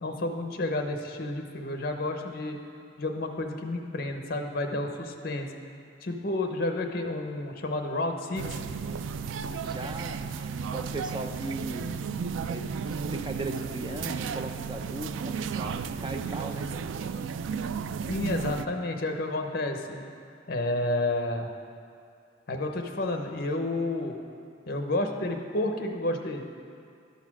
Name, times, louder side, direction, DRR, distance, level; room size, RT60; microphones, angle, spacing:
voice 1, 0.0-2.6 3.0-5.5 6.0-8.5 18.1-20.0 20.5-21.5 22.5-24.2 24.7-26.4, left 2 dB, 55° left, 4 dB, 0.7 m, -30 dB
sound 1, 8.4-18.7, right 6 dB, 85° right, 0.3 m, -33 dB
voice 2, 9.6-11.9 12.5-12.7 13.0-16.7, right 2 dB, 25° right, 5 dB, 0.5 m, -38 dB
11.5 x 4.1 x 6.0 m, 2.4 s
head